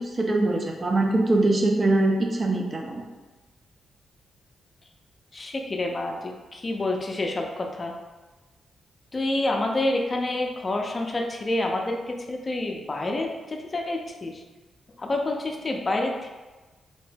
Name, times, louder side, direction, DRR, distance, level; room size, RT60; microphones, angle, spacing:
voice 1, 0.0-3.0, right 2 dB, 40° right, 1 dB, 0.6 m, -23 dB
voice 2, 5.3-7.9 9.1-14.3 15.0-16.3, left 2 dB, 35° left, 2 dB, 0.5 m, -28 dB
2.8 x 2.1 x 3.3 m, 1.2 s
supercardioid pair, 55°, 0 cm